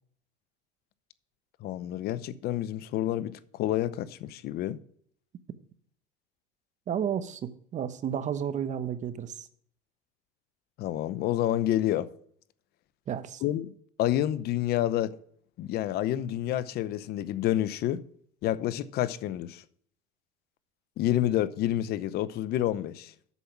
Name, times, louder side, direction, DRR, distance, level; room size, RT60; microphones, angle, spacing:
voice 1, 1.6-4.8 10.8-12.1 13.4-13.7 14.0-15.1 15.6-18.0 18.4-19.6 21.0-23.1, left 13 dB, 55° left, 0.7 m, -28 dB
voice 2, 6.9-9.5 13.1-13.4, right 8 dB, 40° right, 1.0 m, -32 dB
8.3 x 7.1 x 5.8 m
supercardioid pair, 100°, 19 cm